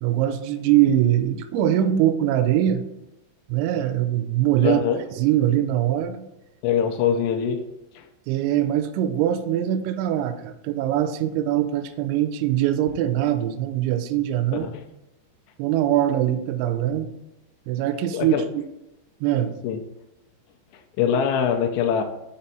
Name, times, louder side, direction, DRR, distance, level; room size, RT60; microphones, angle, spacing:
voice 1, 0.0-2.9 3.5-4.8 5.2-6.3 8.3-14.7 15.6-17.1 17.7-18.6 19.2-19.6, right 11 dB, 85° right, 9 dB, 2.9 m, -22 dB
voice 2, 4.6-5.0 6.6-7.7 8.0-8.1 14.5-14.8 18.1-18.5 19.6-19.8 21.0-22.0, left 8 dB, 80° left, 3 dB, 2.7 m, -23 dB
6.1 x 5.3 x 4.2 m, 0.90 s
omnidirectional pair, 5.4 m